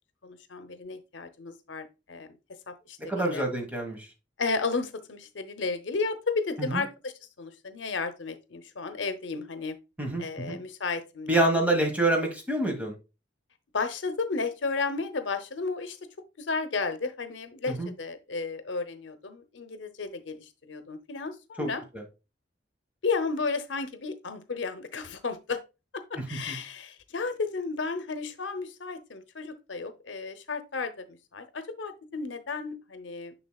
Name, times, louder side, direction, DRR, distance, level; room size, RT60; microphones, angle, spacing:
voice 1, 0.2-2.3 2.7-3.4 4.4-7.1 7.4-9.8 10.2-11.4 13.7-16.0 16.4-21.8 23.0-25.6 25.9-33.3, left 4 dB, 85° left, 0.7 m, -33 dB
voice 2, 3.0-4.0 6.6-6.8 10.0-10.6 11.3-12.9 17.7-17.9 21.6-21.7 21.9-22.0 26.3-26.5, right 1 dB, 10° right, 1.4 m, -27 dB
6.6 x 6.1 x 2.3 m
head